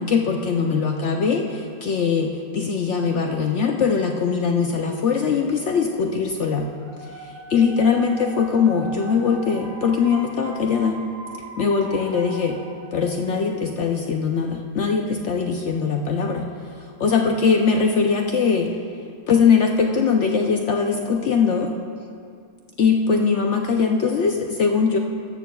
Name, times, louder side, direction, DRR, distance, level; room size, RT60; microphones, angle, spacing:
voice 1, 0.0-6.7 7.0-11.0 11.6-12.6 12.9-16.5 16.8-18.7 19.3-21.7 22.8-25.0, left 5 dB, 70° left, 2 dB, 0.7 m, -21 dB
sound 1, 6.7-13.5, right 3 dB, 45° right, 0.9 m, -39 dB
15.5 x 13.0 x 2.3 m, 2.4 s
omnidirectional pair, 1.8 m